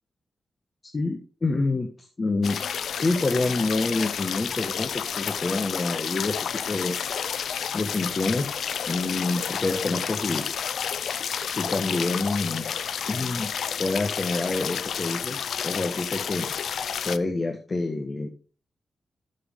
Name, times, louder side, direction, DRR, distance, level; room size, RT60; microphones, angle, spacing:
voice 1, 0.9-2.6 2.9-7.0 7.7-8.6 8.9-10.4 11.5-12.6 13.1-13.5 13.8-16.5 17.0-18.3, left 3 dB, 35° left, 5 dB, 1.3 m, -27 dB
sound 1, 2.4-17.2, left 8 dB, 85° left, 0.5 m, -30 dB
13.0 x 6.3 x 3.8 m, 0.37 s
cardioid pair, 90°, 0 cm